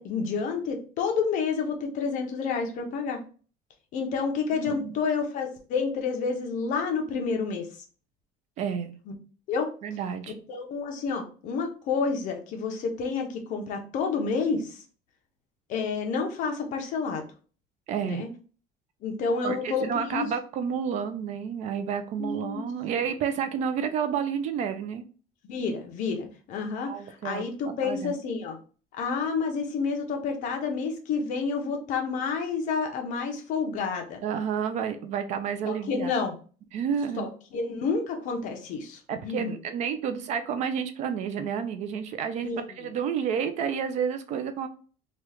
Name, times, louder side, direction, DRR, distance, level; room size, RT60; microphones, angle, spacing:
voice 1, 0.0-3.2 3.9-7.7 9.1-9.2 9.5-9.7 10.5-14.8 15.7-17.2 18.0-18.3 19.0-20.3 22.2-22.7 25.5-28.6 28.9-34.2 35.6-36.3 37.2-37.3 37.5-39.0 39.2-39.5 42.4-42.6, left 5 dB, 55° left, 3 dB, 0.8 m, -29 dB
voice 2, 4.5-5.0 8.6-9.0 9.8-10.3 17.9-18.2 19.4-25.0 26.8-27.5 27.8-28.2 34.2-36.1 36.7-37.3 39.1-42.5 42.8-44.7, right 7 dB, 50° right, 9 dB, 0.4 m, -30 dB
3.0 x 2.3 x 3.4 m, 0.39 s
cardioid pair, 160°, 16 cm